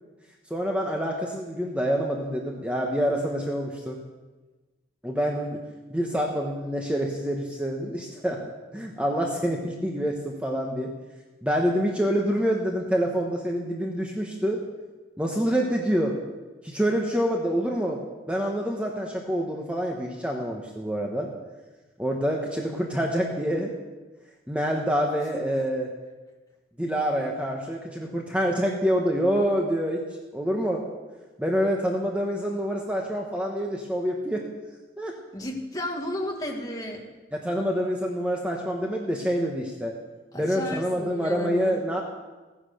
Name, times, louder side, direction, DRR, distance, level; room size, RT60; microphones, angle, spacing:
voice 1, 0.5-4.0 5.0-5.6 5.9-8.4 8.7-10.9 11.4-14.6 15.2-16.2 16.6-18.0 18.3-21.3 22.0-23.7 24.5-25.9 26.8-30.0 30.3-30.8 31.4-34.5 35.0-35.1 37.3-39.9 40.3-42.0, equal, 5° right, 0 dB, 1.1 m, -26 dB
voice 2, 35.3-37.0 40.3-41.8, left 1 dB, 20° left, 1 dB, 1.8 m, -33 dB
15.5 x 10.0 x 6.5 m, 1.2 s
head